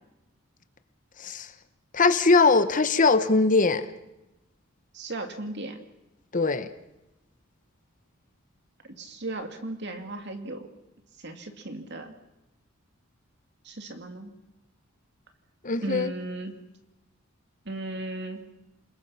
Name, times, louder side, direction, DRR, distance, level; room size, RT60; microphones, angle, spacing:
voice 1, 1.2-1.5 1.9-3.9 6.3-6.7 15.6-16.1, left 3 dB, 40° left, 11 dB, 1.0 m, -21 dB
voice 2, 4.9-5.8 9.0-10.7 11.2-12.1 13.6-14.3 15.8-16.5 17.7-18.4, right 2 dB, 55° right, 5 dB, 2.6 m, -36 dB
28.5 x 20.5 x 5.8 m, 0.97 s
head